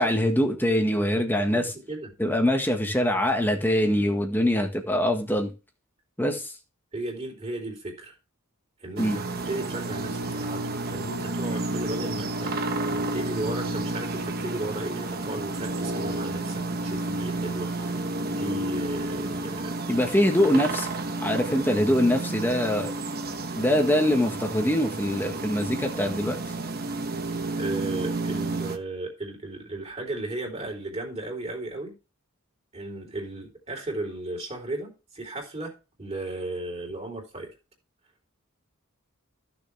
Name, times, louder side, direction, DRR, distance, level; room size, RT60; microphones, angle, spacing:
voice 1, 0.0-1.6 2.2-5.5 6.2-6.5 9.0-9.2 19.9-20.9 21.2-22.9 23.6-26.4, left 1 dB, 10° left, 1.6 m, -23 dB
voice 2, 1.5-2.1 6.9-8.1 8.8-12.5 12.9-18.1 18.4-19.7 26.9-27.0 27.6-32.0 32.7-35.7 36.0-37.5, right 2 dB, 30° right, 3.8 m, -35 dB
sound 1, 9.0-28.8, right 2 dB, 45° right, 1.1 m, -31 dB
15.0 x 7.0 x 3.4 m
head